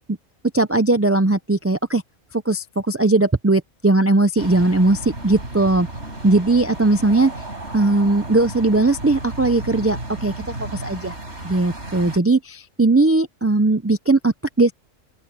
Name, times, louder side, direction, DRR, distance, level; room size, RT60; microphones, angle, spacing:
voice 1, 0.5-2.0 2.3-5.9 6.2-7.3 7.7-11.1 11.4-14.7, right 2 dB, 25° right, 0.3 m, -18 dB
sound 1, 4.4-12.2, right 1 dB, 60° right, 5.6 m, -34 dB
open air
omnidirectional pair, 1.3 m